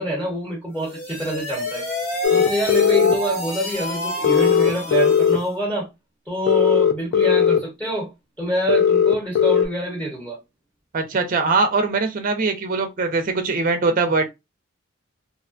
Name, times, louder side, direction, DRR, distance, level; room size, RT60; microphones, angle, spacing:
voice 1, 0.0-1.8 2.3-5.9 6.3-8.1 8.4-10.4, right 1 dB, 5° left, 0.9 m, -26 dB
sound 1, 0.7-5.5, left 1 dB, 40° left, 1.1 m, -29 dB
sound 2, 2.2-3.1 4.2-5.4 6.5-7.6 8.7-9.7, left 7 dB, 55° left, 0.4 m, -17 dB
voice 2, 10.9-14.3, right 3 dB, 40° right, 0.4 m, -21 dB
2.7 x 2.1 x 2.4 m
head